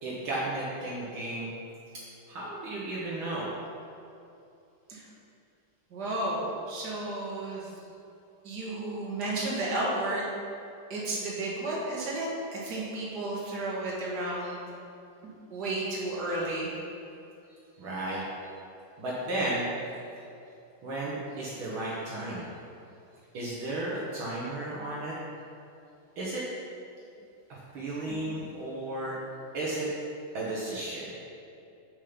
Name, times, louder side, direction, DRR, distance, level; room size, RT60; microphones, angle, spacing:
voice 1, 0.0-1.5 2.3-3.5 17.8-18.2 19.0-19.7 20.8-22.4 23.3-25.1 26.2-26.4 27.7-29.2 29.5-29.9 30.3-31.1, right 2 dB, 70° right, -6 dB, 2.1 m, -33 dB
voice 2, 5.9-7.7 8.4-10.3 10.9-14.6 15.5-16.7 28.1-28.2, right 2 dB, 50° right, -5 dB, 2.3 m, -32 dB
7.6 x 6.9 x 5.3 m, 2.6 s
omnidirectional pair, 2.3 m